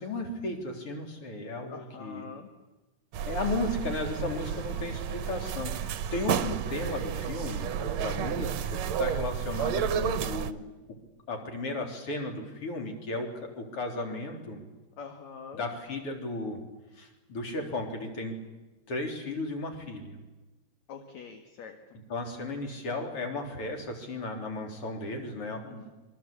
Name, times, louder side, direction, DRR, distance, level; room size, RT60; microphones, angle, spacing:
voice 1, 0.0-2.3 3.3-10.6 11.3-14.6 15.5-16.6 17.0-18.4 18.9-20.2 22.1-25.9, left 2 dB, 45° left, 3 dB, 4.4 m, -35 dB
voice 2, 1.7-2.5 15.0-15.6 20.9-21.8 25.6-25.9, left 5 dB, 65° left, 5 dB, 3.0 m, -44 dB
sound 1, 3.1-10.5, right 8 dB, 65° right, 1.9 m, -31 dB
27.0 x 23.5 x 8.6 m, 1.1 s
omnidirectional pair, 3.6 m